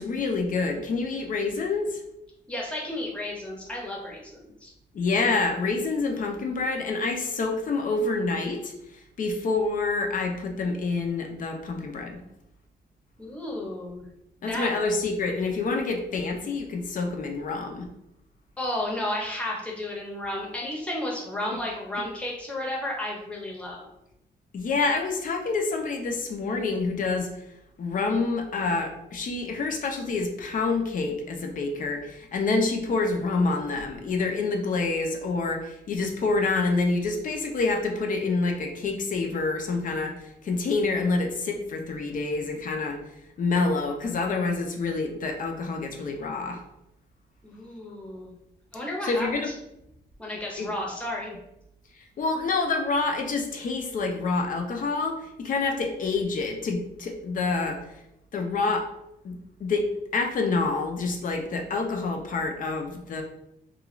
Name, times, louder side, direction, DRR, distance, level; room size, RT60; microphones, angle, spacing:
voice 1, 0.0-2.0 4.9-12.2 14.4-17.9 24.5-27.3 27.8-43.0 43.4-46.6 49.0-49.5 50.6-50.7 52.2-57.8 58.3-58.9 59.2-63.2, left 3 dB, 50° left, 3 dB, 0.5 m, -27 dB
voice 2, 2.5-4.7 13.2-14.0 14.5-14.9 18.6-23.9 47.4-48.3 48.7-49.4 50.2-51.3, left 1 dB, 5° left, -3 dB, 0.7 m, -33 dB
2.5 x 2.3 x 3.0 m, 0.82 s
wide cardioid pair, 130°, 17 cm